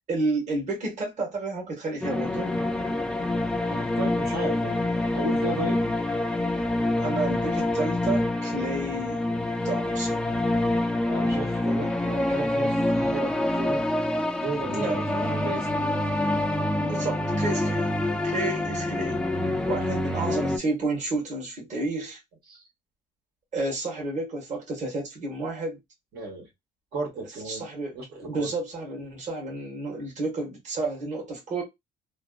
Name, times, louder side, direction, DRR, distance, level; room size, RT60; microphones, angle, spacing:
voice 1, 0.1-2.5 7.0-9.3 9.6-10.3 14.7-15.6 16.8-17.9 18.2-19.2 19.7-22.2 23.5-25.8 27.4-31.6, right 2 dB, 45° right, 1.6 m, -31 dB
sound 1, 2.0-20.6, left 1 dB, 5° left, 0.4 m, -26 dB
voice 2, 3.7-4.8 5.1-5.8 11.0-13.8 14.4-15.0 15.4-16.0 22.5-22.6 26.1-26.5 26.9-27.6 27.9-28.5, right 2 dB, 70° right, 1.6 m, -34 dB
3.2 x 2.0 x 2.4 m
cardioid pair, 110°, 17 cm